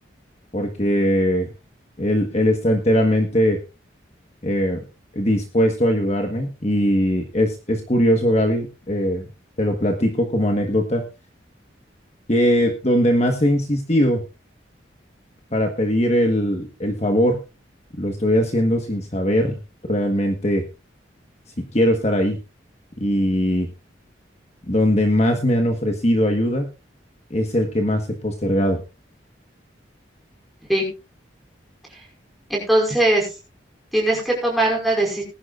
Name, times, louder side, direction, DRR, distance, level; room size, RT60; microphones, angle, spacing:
voice 1, 0.5-1.5 2.0-3.6 4.4-4.8 5.1-9.2 9.6-11.0 12.3-14.2 15.5-17.4 18.0-19.5 19.9-20.6 21.6-22.4 23.0-23.7 24.7-26.7 27.3-28.8, equal, 35° left, 3 dB, 1.4 m, -20 dB
voice 2, 32.5-33.3 33.9-35.2, right 1 dB, ahead, -3 dB, 5.2 m, -20 dB
20.0 x 11.0 x 2.5 m, 0.30 s
head